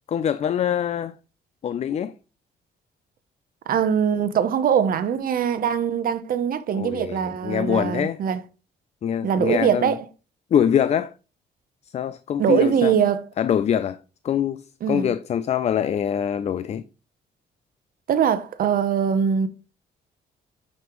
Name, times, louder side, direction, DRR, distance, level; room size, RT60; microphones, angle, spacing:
voice 1, 0.1-1.2 1.6-2.1 6.8-8.2 9.0-9.9 10.5-11.1 11.9-13.0 13.4-14.0 14.2-16.8, left 9 dB, 40° left, 0.4 m, -24 dB
voice 2, 3.7-8.4 9.2-10.1 12.4-13.2 14.8-15.1 18.1-19.5, right 8 dB, 55° right, 0.8 m, -22 dB
9.3 x 5.3 x 3.0 m
cardioid pair, 140°, 17 cm